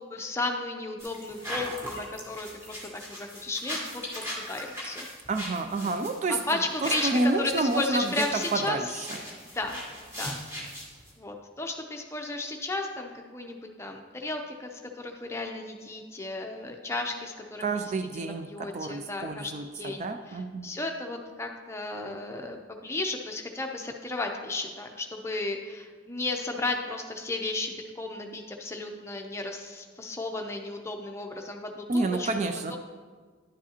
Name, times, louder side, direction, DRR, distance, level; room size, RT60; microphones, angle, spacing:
voice 1, 0.0-4.0 4.3-5.1 6.3-9.0 9.5-9.8 10.2-10.4 11.2-17.6 18.2-32.3 32.7-32.8, left 2 dB, 15° left, 3 dB, 0.6 m, -34 dB
sound 1, 1.0-11.1, equal, 15° right, 1.9 m, -39 dB
voice 2, 5.3-6.4 6.8-9.1 17.6-20.7 31.9-32.8, right 2 dB, 35° right, 7 dB, 0.3 m, -29 dB
11.0 x 7.2 x 2.9 m, 1.5 s
head